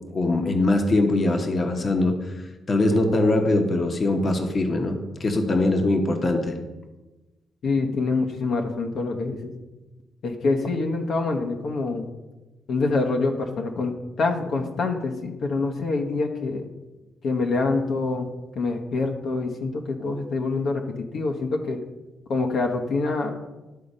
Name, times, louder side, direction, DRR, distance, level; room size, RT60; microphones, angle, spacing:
voice 1, 0.1-2.2 2.7-6.6, left 2 dB, 35° left, 5 dB, 1.0 m, -22 dB
voice 2, 7.6-9.5 10.2-12.1 12.7-16.7 17.2-18.3 18.5-20.8 21.1-21.8 22.3-23.3, left 3 dB, 65° left, 2 dB, 1.0 m, -25 dB
11.5 x 3.8 x 5.4 m, 1.1 s
cardioid pair, 90°, 0 cm